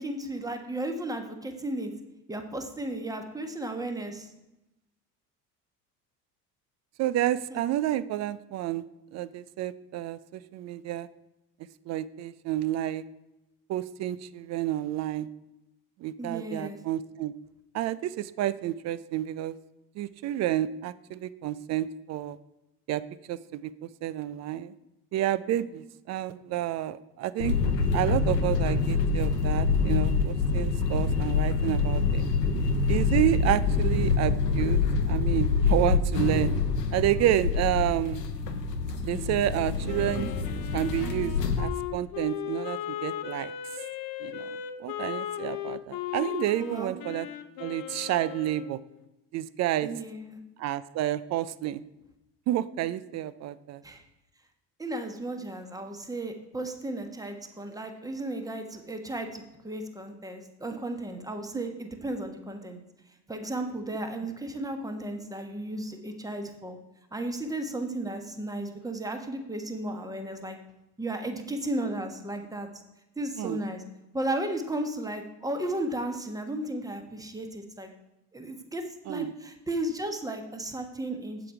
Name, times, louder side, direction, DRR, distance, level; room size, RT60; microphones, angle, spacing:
voice 1, 0.0-1.9 2.3-4.3 7.5-7.6 16.2-16.8 46.6-47.0 49.8-50.4 53.8-54.0 54.8-62.8 63.3-66.8 67.1-70.6 71.0-72.7 73.2-73.8 74.1-77.9 78.3-78.8 79.1-81.5, right 1 dB, 5° right, 5 dB, 1.3 m, -34 dB
voice 2, 7.0-8.8 9.1-11.1 11.9-13.0 13.7-15.3 16.0-17.3 17.7-19.6 20.0-22.4 22.9-23.0 23.3-24.7 25.1-27.6 27.9-32.3 32.9-36.5 36.9-38.2 39.0-40.3 40.7-43.5 44.2-47.3 47.6-48.8 49.3-49.9 50.6-51.8 52.5-53.8 73.4-73.6 79.1-79.3, right 13 dB, 35° right, 17 dB, 0.5 m, -30 dB
sound 1, 27.4-41.6, left 4 dB, 90° left, 0.9 m, -26 dB
Wind instrument woodwind instrument, 39.9-48.7, left 11 dB, 45° left, 0.9 m, -37 dB
8.2 x 7.5 x 4.8 m, 0.93 s
hypercardioid pair, 70°, 48 cm